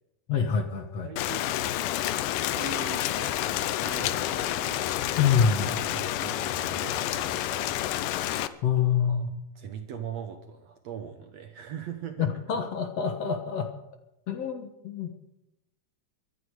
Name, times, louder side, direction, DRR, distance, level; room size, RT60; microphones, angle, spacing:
voice 1, 0.3-1.1 5.2-5.7 8.6-9.3 12.2-13.7 14.3-15.1, left 7 dB, 60° left, 6 dB, 2.0 m, -26 dB
voice 2, 1.0-1.5 2.5-4.9 5.7-7.8 9.1-9.2 9.6-12.3, right 8 dB, 65° right, 6 dB, 1.9 m, -41 dB
Rain, 1.2-8.5, left 13 dB, 75° left, 2.2 m, -29 dB
sound 1, 1.7-7.2, left 1 dB, 25° left, 1.6 m, -50 dB
23.5 x 10.0 x 4.9 m, 0.86 s
omnidirectional pair, 3.9 m